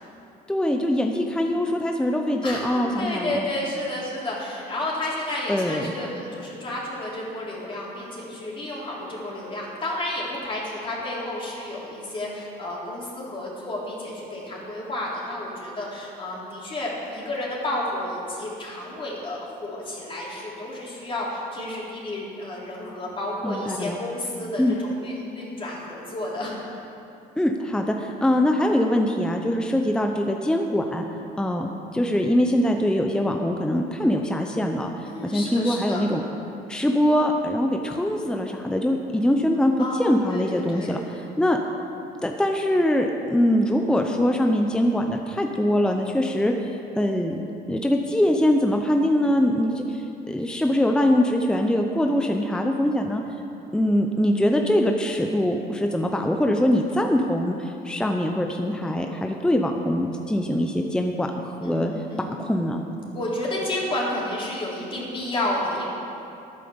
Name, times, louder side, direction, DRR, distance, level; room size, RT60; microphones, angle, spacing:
voice 1, 0.5-3.5 5.5-5.9 23.4-24.0 24.6-24.8 27.4-31.0 31.4-36.2 36.7-41.6 42.2-47.4 47.7-53.2 53.7-61.9 62.4-62.8, left 1 dB, 5° left, 3 dB, 0.7 m, -23 dB
voice 2, 2.4-26.5 35.1-36.1 39.8-41.0 61.6-62.4 63.1-65.8, left 1 dB, 30° left, -5 dB, 3.6 m, -31 dB
11.5 x 8.9 x 7.1 m, 2.8 s
cardioid pair, 110°, 17 cm